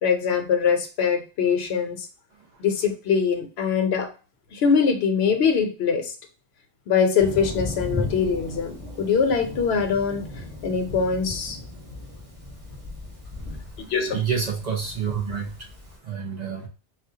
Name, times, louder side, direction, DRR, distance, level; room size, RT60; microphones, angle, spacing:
voice 1, 0.0-2.1 2.6-4.1 4.5-6.1 6.9-10.2 10.6-11.6 13.8-14.2, left 6 dB, 65° left, 5 dB, 0.9 m, -23 dB
Thunder, 7.2-15.9, left 2 dB, 70° right, 2.1 m, -36 dB
voice 2, 14.1-15.6 16.0-16.7, right 7 dB, 50° right, 0 dB, 0.5 m, -28 dB
4.2 x 2.1 x 2.7 m, 0.33 s
omnidirectional pair, 1.3 m